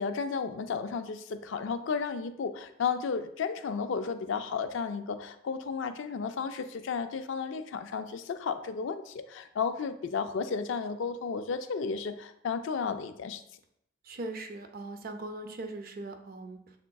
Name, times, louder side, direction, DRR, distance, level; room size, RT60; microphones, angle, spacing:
voice 1, 0.0-13.4, left 5 dB, 70° left, 10 dB, 0.4 m, -33 dB
voice 2, 14.0-16.8, right 2 dB, 50° right, 5 dB, 0.5 m, -40 dB
6.7 x 3.5 x 2.3 m, 0.75 s
head